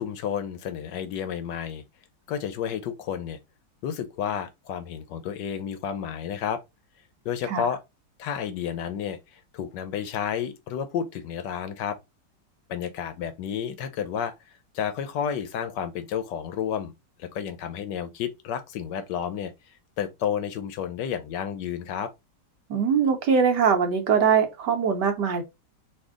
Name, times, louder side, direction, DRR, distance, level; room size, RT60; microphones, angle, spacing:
voice 1, 0.0-1.8 2.3-3.4 3.8-6.6 7.2-7.8 8.2-12.0 12.7-16.9 17.2-19.5 20.0-22.1, left 8 dB, 75° left, 1.2 m, -31 dB
voice 2, 22.7-25.4, right 6 dB, 65° right, 1.4 m, -22 dB
4.3 x 2.7 x 3.6 m
omnidirectional pair, 2.1 m